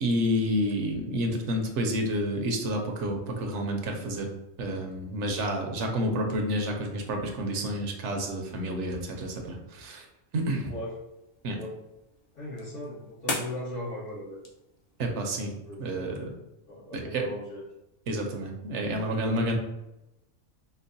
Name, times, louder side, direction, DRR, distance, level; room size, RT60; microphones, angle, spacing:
voice 1, 0.0-4.3 4.6-10.0 10.3-10.7 11.4-11.6 15.0-15.5 15.8-16.3 16.9-17.2 18.1-19.6, equal, 70° right, 2 dB, 0.9 m, -29 dB
sound 1, 10.4-15.5, left 2 dB, 45° left, 0.5 m, -41 dB
voice 2, 10.6-11.0 11.5-11.8 12.3-14.4 15.7-16.1 16.6-17.7, left 1 dB, 70° left, -11 dB, 1.8 m, -38 dB
5.1 x 2.0 x 2.6 m, 0.94 s
omnidirectional pair, 1.3 m